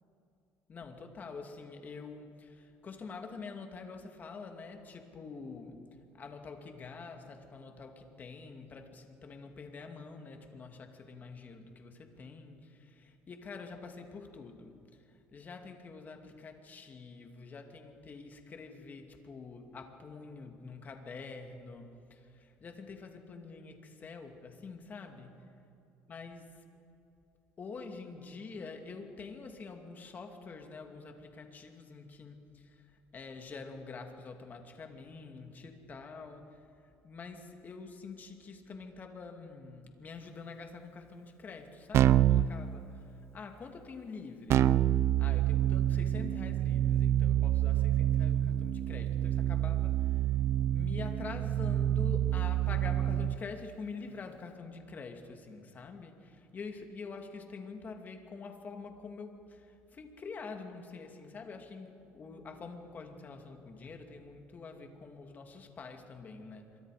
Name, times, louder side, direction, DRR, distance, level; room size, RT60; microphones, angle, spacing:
voice 1, 0.7-5.8 6.1-14.8 15.3-25.4 26.1-26.5 27.6-32.8 33.1-36.6 37.0-43.0 43.3-44.7 45.2-50.2 50.7-66.8, left 4 dB, 35° left, 4 dB, 2.5 m, -46 dB
Keyboard (musical), 41.9-42.5 44.5-53.4, right 11 dB, 55° right, 0.6 m, -27 dB
27.0 x 23.5 x 5.1 m, 2.7 s
cardioid pair, 120°, 5 cm